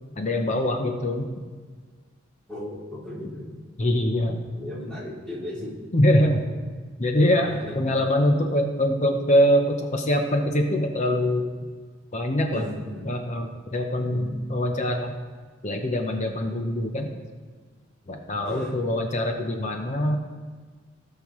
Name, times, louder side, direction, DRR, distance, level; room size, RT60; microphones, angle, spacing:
voice 1, 0.2-1.3 3.8-4.4 5.9-6.5 7.0-7.5 7.7-11.7 12.1-12.6 13.0-15.1 15.6-17.1 18.1-20.2, left 1 dB, 35° left, 4 dB, 0.7 m, -23 dB
voice 2, 2.5-3.5 4.6-5.8 7.4-7.8 12.5-13.1 14.0-14.2 18.4-18.7, left 1 dB, 5° left, -9 dB, 2.9 m, -35 dB
16.5 x 5.6 x 3.1 m, 1.5 s
head